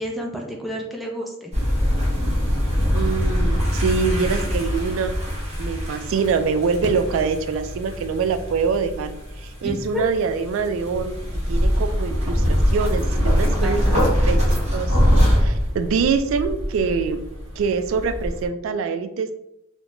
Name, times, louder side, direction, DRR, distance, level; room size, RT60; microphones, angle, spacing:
voice 1, 0.0-1.5 9.6-10.0 13.6-14.1, equal, ahead, -1 dB, 0.4 m, -30 dB
sound 1, 1.5-18.5, equal, 35° right, 1.3 m, -23 dB
voice 2, 2.9-5.2 5.6-9.1 9.4-11.1 11.5-15.0 15.3-17.2 17.6-19.3, right 5 dB, 80° right, 9 dB, 0.3 m, -24 dB
Fireworks, 5.1-5.2 6.8-8.1 9.9-10.0 10.2-10.3, equal, 50° left, 0.6 m, -36 dB
3.7 x 2.1 x 2.9 m, 0.81 s
head